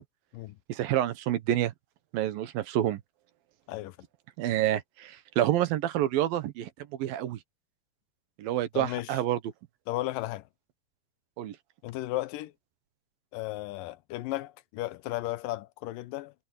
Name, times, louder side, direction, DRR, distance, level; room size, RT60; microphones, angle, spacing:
voice 1, 0.7-1.7 2.1-3.0 4.4-6.7 7.0-7.4 8.4-9.4 11.4-11.6, right 12 dB, 90° right, 3.0 m, -28 dB
voice 2, 8.7-9.2 9.9-10.4 11.8-12.5 13.3-16.3, left 17 dB, 80° left, 2.3 m, -34 dB
omnidirectional pair, 4.0 m